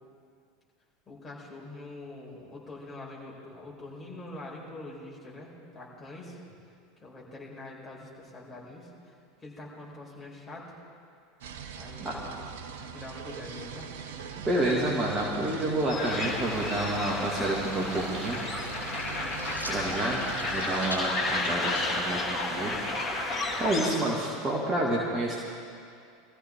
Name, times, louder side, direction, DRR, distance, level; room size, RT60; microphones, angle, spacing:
voice 1, 1.1-6.4 7.0-9.1 9.4-10.7 11.7-12.4 12.8-13.9 23.7-24.3, left 2 dB, 15° left, -5 dB, 4.7 m, -44 dB
sound 1, 11.4-20.9, right 7 dB, 60° right, 0.8 m, -41 dB
voice 2, 14.4-18.4 19.7-22.8 23.3-25.4, right 1 dB, 20° right, -4 dB, 2.2 m, -29 dB
sound 2, 15.9-23.9, left 2 dB, 30° left, 3.1 m, -32 dB
sound 3, 16.8-23.3, equal, 90° right, 3.9 m, -44 dB
22.0 x 14.5 x 3.8 m, 2.4 s
figure-of-eight pair, 80°, 0 cm